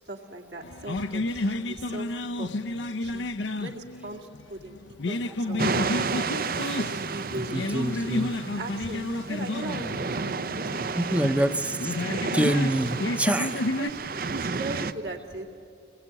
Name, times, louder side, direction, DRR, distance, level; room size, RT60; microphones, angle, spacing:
voice 1, 0.0-2.1 2.4-2.5 3.0-3.3 3.6-6.2 6.8-8.2 8.5-11.4 13.8-14.0 14.3-15.5, right 1 dB, 65° right, 2 dB, 2.3 m, -39 dB
sound 1, 0.6-13.9, left 2 dB, 75° left, 0.7 m, -31 dB
sound 2, 5.6-14.9, right 4 dB, 50° right, 0.6 m, -32 dB
voice 2, 7.5-8.4 11.0-11.9 12.3-13.6, right 1 dB, 5° right, 9 dB, 0.8 m, -26 dB
25.5 x 20.0 x 8.9 m, 2.5 s
head